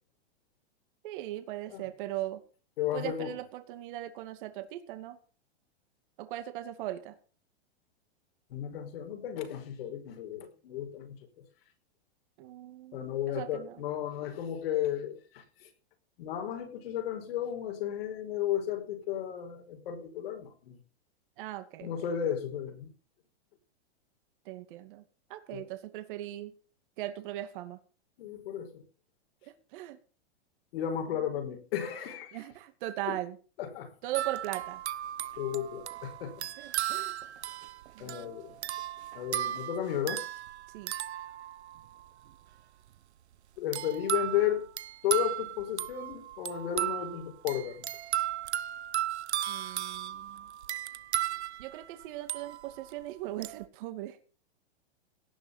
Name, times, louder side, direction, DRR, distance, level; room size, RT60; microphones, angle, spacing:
voice 1, 1.0-2.4 2.9-5.2 6.2-7.2 12.4-13.8 21.4-21.9 24.4-25.0 25.3-26.5 27.0-27.8 29.4-30.0 31.1-31.5 32.3-33.4 34.0-34.8 36.6-37.2 37.9-38.4 40.7-40.9 49.5-50.5 51.6-54.2, right 14 dB, 50° right, 8 dB, 2.4 m, -39 dB
voice 2, 2.8-3.3 8.5-11.4 12.9-15.7 16.2-20.8 21.8-22.9 25.5-25.6 28.2-28.8 30.7-32.4 33.1-33.2 33.6-33.9 35.4-36.5 38.0-38.5 39.1-40.2 43.6-44.7 45.0-47.9, left 10 dB, 60° left, 5 dB, 5.2 m, -34 dB
sound 1, 34.1-42.0 43.7-52.9 53.4-53.6, right 12 dB, 85° right, 1.0 m, -36 dB
18.0 x 7.0 x 7.3 m, 0.39 s
hypercardioid pair, 145°, 33 cm